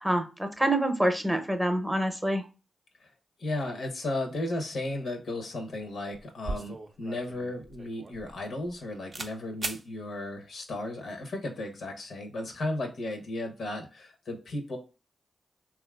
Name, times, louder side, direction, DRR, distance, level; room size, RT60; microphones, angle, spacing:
voice 1, 0.0-2.4, right 1 dB, 10° right, 6 dB, 0.6 m, -26 dB
voice 2, 3.4-14.8, left 2 dB, 75° left, 4 dB, 0.6 m, -35 dB
sound 1, 6.1-8.8 9.1-9.3 9.6-9.8, right 2 dB, 50° right, 0.4 m, -38 dB
2.8 x 2.4 x 2.2 m, 0.32 s
supercardioid pair, 45°, 0 cm